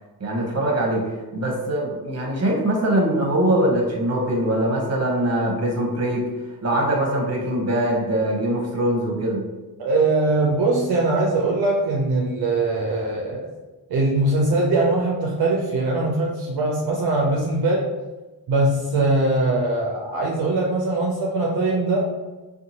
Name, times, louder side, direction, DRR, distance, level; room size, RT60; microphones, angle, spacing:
voice 1, 0.2-6.2 6.6-9.4, right 1 dB, 40° right, -1 dB, 0.9 m, -22 dB
voice 2, 9.8-13.5 13.9-17.9 18.5-22.2, right 2 dB, 60° right, -2 dB, 0.6 m, -21 dB
2.6 x 2.3 x 2.8 m, 1.2 s
cardioid pair, 65°, 41 cm